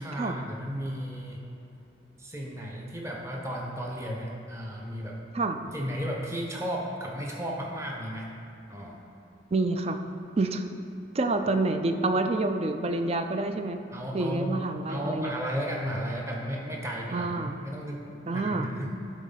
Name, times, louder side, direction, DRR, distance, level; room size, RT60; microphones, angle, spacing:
voice 1, 0.0-1.4 2.2-5.2 5.7-8.3 8.7-9.0 13.9-14.6 14.9-18.9, equal, 15° right, -1 dB, 0.9 m, -34 dB
voice 2, 9.5-10.0 10.4-10.8 11.1-13.8 14.1-15.3 17.1-17.5 18.3-18.7, right 2 dB, 35° right, 7 dB, 0.4 m, -28 dB
11.0 x 4.1 x 4.0 m, 2.8 s
head